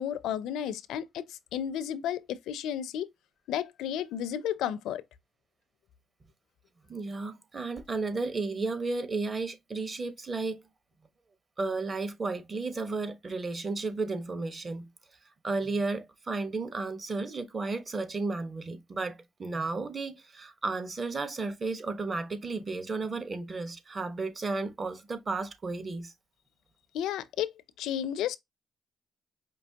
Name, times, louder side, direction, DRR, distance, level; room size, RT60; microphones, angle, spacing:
voice 1, 0.0-3.1 3.5-5.0 26.9-27.5 27.8-28.4, left 10 dB, 85° left, 0.5 m, -32 dB
voice 2, 6.9-10.6 11.6-14.8 15.4-26.1, right 3 dB, 35° right, 1.1 m, -33 dB
5.2 x 2.8 x 2.8 m
cardioid pair, 90°, 0 cm